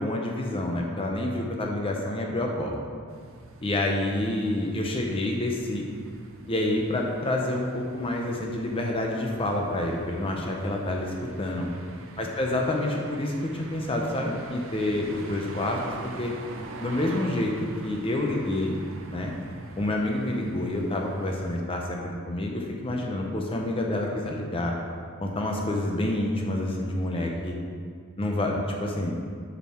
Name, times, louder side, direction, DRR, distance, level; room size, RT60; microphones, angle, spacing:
voice 1, 0.0-2.7 3.6-5.8 6.5-11.7 12.2-15.8 16.2-16.3 16.8-17.5 17.8-18.8 19.1-19.3 19.8-24.8 25.2-27.6 28.2-29.1, left 1 dB, 25° left, 0 dB, 0.6 m, -28 dB
sound 1, 3.1-21.6, right 2 dB, 65° right, 0.7 m, -45 dB
6.9 x 6.3 x 4.3 m, 2.1 s
head